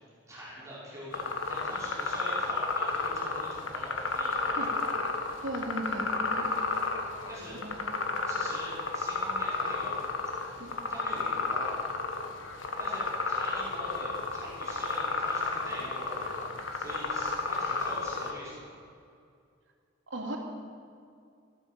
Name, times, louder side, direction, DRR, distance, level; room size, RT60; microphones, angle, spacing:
voice 1, 0.3-4.8 7.3-7.8 8.3-10.0 10.5-11.7 12.8-18.6, equal, 15° right, -8 dB, 5.2 m, -44 dB
sound 1, 1.1-18.3, left 3 dB, 90° left, 1.6 m, -32 dB
voice 2, 5.4-6.1 6.4-6.5 7.6-7.8 10.6-10.7 20.1-20.4, right 1 dB, 80° right, 1 dB, 2.7 m, -36 dB
14.0 x 12.0 x 7.6 m, 2.4 s
head